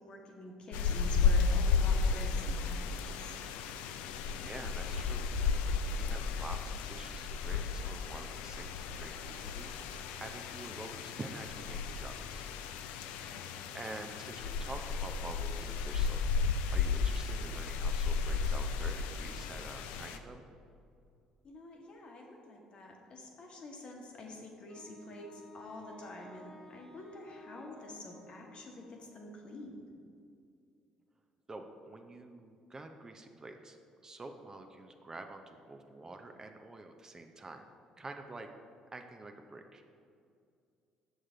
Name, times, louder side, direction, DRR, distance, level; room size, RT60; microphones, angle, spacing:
voice 1, 0.0-3.4 13.1-13.8 21.4-29.8, left 1 dB, 50° left, 1 dB, 1.2 m, -48 dB
sound 1, 0.7-20.2, left 5 dB, 80° left, 0.4 m, -33 dB
voice 2, 4.4-9.7 10.1-12.5 13.1-13.4 13.7-20.5 31.5-33.8 34.0-37.7 38.0-38.5 38.9-39.8, right 2 dB, 25° right, 5 dB, 0.6 m, -47 dB
Wind instrument woodwind instrument, 24.7-29.3, left 1 dB, 20° left, 1.3 m, -55 dB
6.4 x 6.4 x 3.8 m, 2.5 s
supercardioid pair, 70°, 2 cm